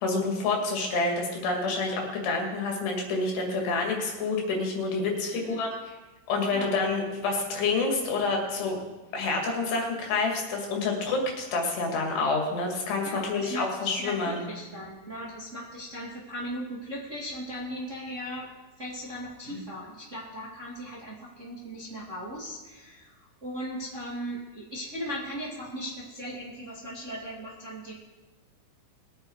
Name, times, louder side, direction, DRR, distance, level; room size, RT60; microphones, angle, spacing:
voice 1, 0.0-5.9 6.3-8.8 9.1-14.5 19.5-19.6, left 3 dB, 85° left, 0 dB, 4.5 m, -28 dB
voice 2, 13.0-18.5 18.8-27.9, equal, 30° right, -4 dB, 1.6 m, -38 dB
22.0 x 8.0 x 4.8 m, 1.2 s
omnidirectional pair, 4.7 m